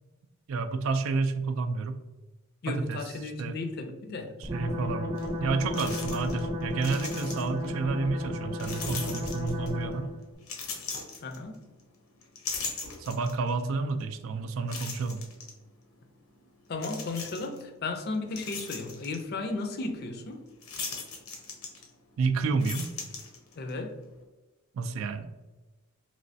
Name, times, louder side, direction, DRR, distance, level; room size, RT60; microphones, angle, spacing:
voice 1, 0.5-2.0 2.7-3.6 4.4-5.1 5.4-10.1 13.0-15.3 22.2-22.9 24.7-25.3, right 4 dB, 70° right, 9 dB, 0.3 m, -30 dB
voice 2, 2.6-4.3 11.2-11.6 16.7-20.4 23.6-23.9, left 3 dB, 50° left, 5 dB, 0.4 m, -34 dB
sound 1, 4.4-10.2, left 1 dB, 20° right, 0.6 m, -34 dB
sound 2, 5.2-5.3 5.7-6.5 6.7-7.7 8.6-9.8 10.4-11.8 12.2-13.5 14.0-14.1 14.7-15.5 16.8-17.6 18.1-19.2 20.6-22.1 22.5-23.7, left 4 dB, 90° left, 0.7 m, -39 dB
3.1 x 3.0 x 2.6 m, 1.2 s
head